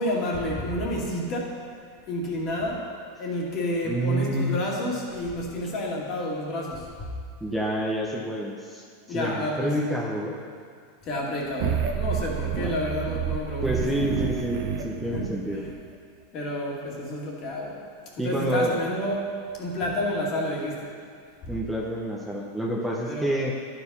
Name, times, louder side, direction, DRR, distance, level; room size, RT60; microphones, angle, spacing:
voice 1, 0.0-1.6 2.1-2.9 3.2-6.9 9.1-9.7 11.1-13.9 15.1-15.3 16.3-17.8 18.2-19.3 19.6-20.9 23.1-23.3, left 1 dB, 40° left, -2 dB, 2.1 m, -29 dB
voice 2, 3.8-4.6 7.4-10.3 12.4-12.7 13.6-15.7 18.2-18.8 21.5-23.5, right 1 dB, 5° right, -3 dB, 1.0 m, -28 dB
sound 1, 11.6-15.7, right 8 dB, 55° right, 0.8 m, -29 dB
11.0 x 5.1 x 5.5 m, 2.1 s
supercardioid pair, 130°, 0 cm